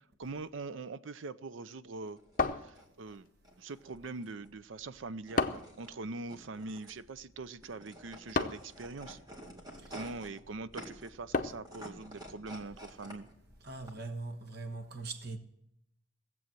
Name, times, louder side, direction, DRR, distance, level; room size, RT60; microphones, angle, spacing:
voice 1, 0.0-2.2 2.5-3.3 3.6-9.2 9.9-13.3, right 3 dB, 75° right, 0.6 m, -43 dB
sound 1, 1.9-13.9, equal, 20° right, 2.0 m, -51 dB
sound 2, 2.4-3.3 5.4-5.8 8.3-8.8 11.3-11.8, left 3 dB, 45° left, 0.7 m, -32 dB
voice 2, 13.6-15.4, right 3 dB, 55° right, 1.3 m, -41 dB
18.0 x 7.8 x 7.6 m
head